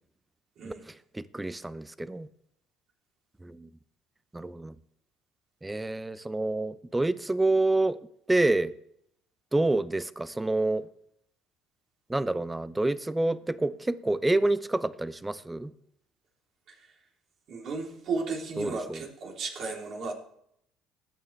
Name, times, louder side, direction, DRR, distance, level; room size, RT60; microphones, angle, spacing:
voice 1, 0.6-2.3 3.4-3.7 4.3-4.7 5.6-8.0 8.3-8.7 9.5-10.9 12.1-15.7 18.6-19.0, right 2 dB, 15° right, 0.8 m, -28 dB
voice 2, 17.5-20.1, right 4 dB, 55° right, 3.3 m, -34 dB
19.5 x 8.9 x 3.3 m
hypercardioid pair, 60°, 0 cm